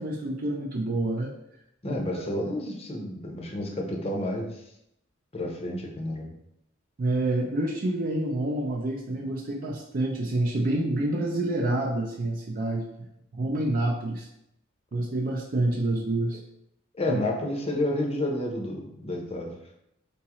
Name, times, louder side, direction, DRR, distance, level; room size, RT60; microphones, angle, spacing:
voice 1, 0.0-1.3 1.9-2.0 7.0-12.9 13.3-14.3 14.9-16.4 17.1-17.2, right 1 dB, 45° right, -1 dB, 0.5 m, -27 dB
voice 2, 1.8-4.5 5.3-6.3 17.0-19.5, left 1 dB, 30° left, 1 dB, 0.7 m, -30 dB
4.0 x 3.6 x 3.0 m, 0.79 s
head